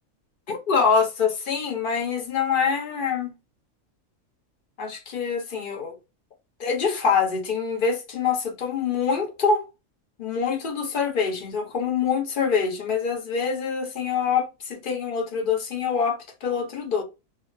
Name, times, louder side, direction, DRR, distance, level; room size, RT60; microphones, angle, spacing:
voice 1, 0.5-3.3 4.8-6.0 6.6-9.6 10.2-17.0, left 6 dB, 45° left, 0.8 m, -25 dB
2.4 x 2.4 x 2.6 m
omnidirectional pair, 1.4 m